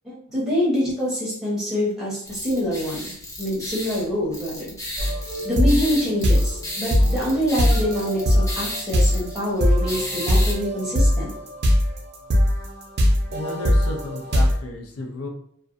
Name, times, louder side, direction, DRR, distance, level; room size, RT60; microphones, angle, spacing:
voice 1, 0.0-3.1 3.4-4.7 5.4-11.3, equal, ahead, -6 dB, 0.8 m, -25 dB
sound 1, 2.2-10.5, left 1 dB, 15° left, 0.4 m, -34 dB
sound 2, 5.0-14.5, equal, 50° right, 0.5 m, -20 dB
voice 2, 13.3-15.3, left 1 dB, 85° left, 3 dB, 0.5 m, -33 dB
2.4 x 2.2 x 2.5 m, 0.67 s
head